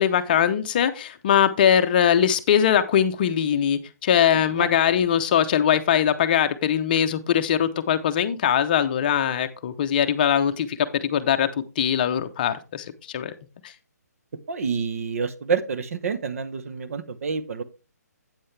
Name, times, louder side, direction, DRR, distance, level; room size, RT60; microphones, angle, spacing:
voice 1, 0.0-11.5 11.8-12.9 13.1-13.3 13.6-13.7, left 9 dB, 30° left, 9 dB, 0.7 m, -21 dB
voice 2, 14.5-17.6, right 5 dB, 55° right, 11 dB, 0.9 m, -28 dB
8.8 x 7.6 x 3.3 m, 0.32 s
hypercardioid pair, 165°, 9 cm